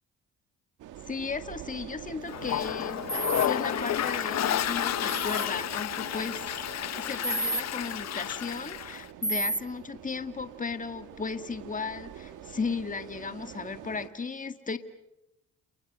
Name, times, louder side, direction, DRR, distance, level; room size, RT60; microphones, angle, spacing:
sound 1, 0.8-14.1, right 11 dB, 85° right, 2.0 m, -45 dB
voice 1, 1.1-6.6 7.0-14.8, left 5 dB, 25° left, 9 dB, 1.9 m, -35 dB
Toilet flush, 2.3-9.0, left 11 dB, 60° left, 0.9 m, -31 dB
sound 2, 3.1-3.5 5.1-5.5 7.2-7.6 9.2-9.6, right 2 dB, 5° left, 1.7 m, -30 dB
30.0 x 29.5 x 6.5 m, 0.85 s
cardioid pair, 90°, 30 cm